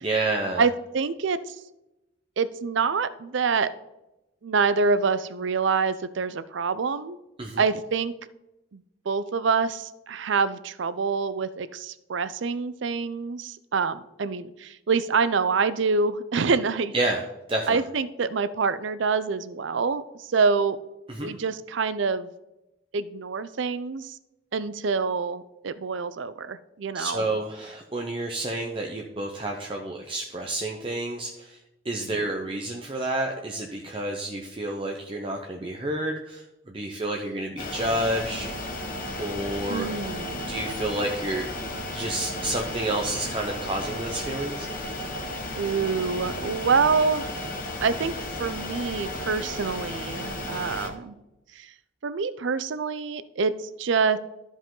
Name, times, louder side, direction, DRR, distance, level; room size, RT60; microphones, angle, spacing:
voice 1, 0.0-0.7 7.4-7.6 16.9-17.2 17.5-17.8 21.1-21.3 26.9-31.6 31.8-38.5 39.2-39.9 40.5-41.5 41.9-44.7, right 1 dB, 25° right, 1 dB, 0.7 m, -29 dB
voice 2, 0.6-1.5 2.4-3.7 4.4-7.2 7.6-8.1 8.7-8.8 9.1-16.9 17.7-20.8 21.2-22.3 22.9-24.2 24.5-27.2 39.7-40.6 45.6-47.3 47.8-48.1 48.4-51.2 51.6-51.7 52.0-54.2, right 5 dB, 70° right, 15 dB, 0.5 m, -26 dB
sound 1, 37.6-50.9, left 1 dB, 45° left, 1.3 m, -34 dB
13.5 x 5.0 x 3.8 m, 0.94 s
head